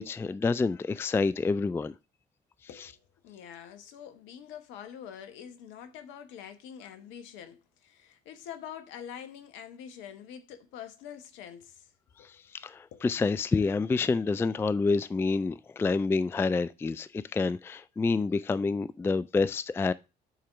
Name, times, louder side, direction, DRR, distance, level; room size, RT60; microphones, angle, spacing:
voice 1, 0.0-1.9 12.2-19.9, left 4 dB, 10° left, 0.3 m, -28 dB
voice 2, 2.7-11.9 12.2-12.4 12.9-13.1, left 9 dB, 65° left, 1.0 m, -45 dB
7.0 x 4.3 x 5.9 m
figure-of-eight pair, 50°, 21 cm